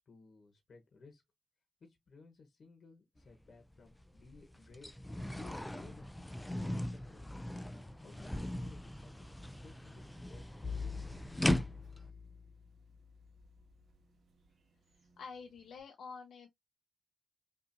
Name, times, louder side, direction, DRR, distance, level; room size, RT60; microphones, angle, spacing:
voice 1, 0.1-1.2 1.8-4.9 5.2-6.1 6.5-7.4 7.7-10.4 10.8-11.2, left 4 dB, 55° left, 1.1 m, -58 dB
sound 1, 3.2-3.3 3.7-12.1, left 1 dB, 10° left, 0.4 m, -39 dB
sound 2, 6.1-15.8, right 4 dB, 65° right, 1.6 m, -72 dB
Bowed string instrument, 10.6-13.7, left 5 dB, 30° left, 1.0 m, -45 dB
voice 2, 14.9-16.5, left 5 dB, 85° left, 0.7 m, -48 dB
5.5 x 2.6 x 2.6 m
wide cardioid pair, 120°, 0 cm